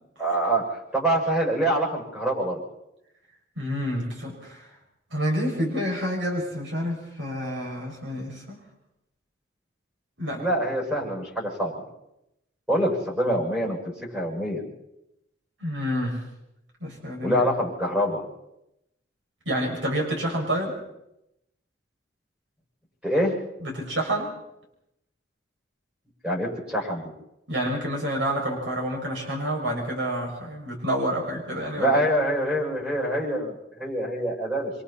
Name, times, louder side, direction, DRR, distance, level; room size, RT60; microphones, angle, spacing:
voice 1, 0.2-0.6 0.9-2.6 10.3-11.8 12.7-13.8 14.1-14.6 17.2-18.2 23.0-23.3 26.2-27.1 31.8-34.7, right 1 dB, 5° right, -6 dB, 6.8 m, -25 dB
voice 2, 3.6-4.7 5.1-8.6 10.2-10.5 15.6-16.2 16.8-17.5 19.5-20.8 23.6-24.3 27.5-32.0, equal, 75° right, -1 dB, 6.9 m, -28 dB
28.0 x 24.5 x 4.3 m, 0.86 s
head